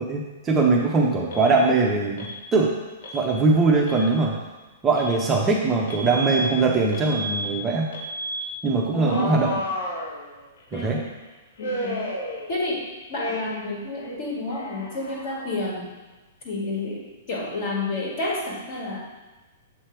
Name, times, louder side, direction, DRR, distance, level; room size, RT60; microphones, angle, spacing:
voice 1, 0.1-2.3 2.5-2.7 3.1-4.3 4.8-7.9 8.6-9.6 10.7-11.0, right 3 dB, 15° right, -2 dB, 0.5 m, -21 dB
Alarm, 1.3-1.5 2.2-2.4 3.0-3.2 3.8-4.1 4.9-5.2 5.9-6.5 6.9-7.5 7.9-8.5 9.0-10.6 11.6-12.8 13.1-13.7 13.9-15.7, equal, 80° left, 1.1 m, -32 dB
voice 2, 8.9-9.4 10.7-11.0 11.6-12.1 12.5-12.8 13.1-15.9 16.4-19.0, left 2 dB, 45° left, -3 dB, 1.7 m, -30 dB
7.4 x 3.2 x 4.5 m, 1.2 s
hypercardioid pair, 165°, 0 cm